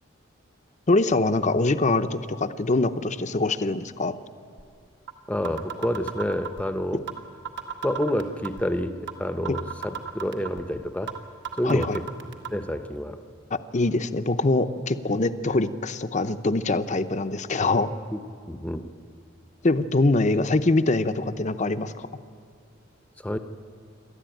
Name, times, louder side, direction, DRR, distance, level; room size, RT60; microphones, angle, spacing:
voice 1, 0.9-4.1 11.6-12.0 13.7-17.9 19.6-22.1, left 2 dB, 35° left, 11 dB, 0.7 m, -23 dB
sound 1, 4.6-4.7 5.1-5.2 5.4-6.6 7.1-7.2 7.4-8.6 9.1-9.2 9.4-10.6 11.1-11.2 11.4-12.5, right 8 dB, 65° right, 1.8 m, -33 dB
voice 2, 5.3-7.0 7.8-11.1 11.6-12.1 12.5-13.2 18.1-18.2 18.5-18.9 23.2-23.4, equal, 5° left, 9 dB, 0.8 m, -28 dB
28.0 x 12.5 x 9.2 m, 2.3 s
head